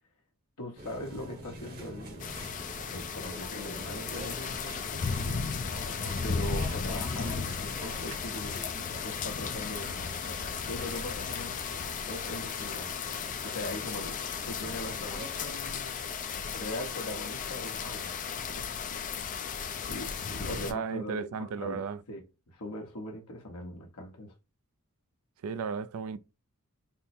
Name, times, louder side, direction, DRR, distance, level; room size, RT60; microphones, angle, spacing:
voice 1, 0.6-2.3 2.9-5.2 6.2-8.6 9.0-10.4 10.7-12.9 13.4-14.2 14.5-16.0 16.5-18.2 18.5-18.6 18.9-19.0 19.9-24.3, left 1 dB, 85° left, 0.9 m, -41 dB
sound 1, 0.8-15.5, right 1 dB, 45° right, 1.0 m, -46 dB
sound 2, 2.2-20.7, left 6 dB, 35° left, 0.4 m, -35 dB
voice 2, 20.4-22.0 25.4-26.2, right 5 dB, 75° right, 0.4 m, -35 dB
3.6 x 2.0 x 4.2 m
head